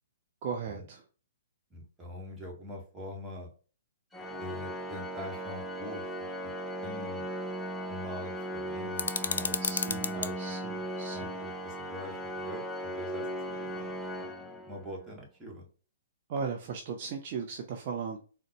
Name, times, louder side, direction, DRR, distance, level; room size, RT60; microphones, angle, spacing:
voice 1, 0.4-1.0 9.6-11.4 16.3-18.2, right 6 dB, 40° right, 2 dB, 0.5 m, -37 dB
voice 2, 1.7-3.5 4.4-6.5 6.8-7.3 7.9-9.6 9.9-10.6 11.1-13.9 14.6-15.7, left 1 dB, 10° right, -2 dB, 1.2 m, -44 dB
Organ, 4.1-15.1, right 1 dB, 10° left, 0.5 m, -37 dB
sound 1, 9.0-10.3, left 5 dB, 65° left, 0.3 m, -32 dB
3.8 x 2.1 x 2.9 m, 0.37 s
figure-of-eight pair, 120°, 0 cm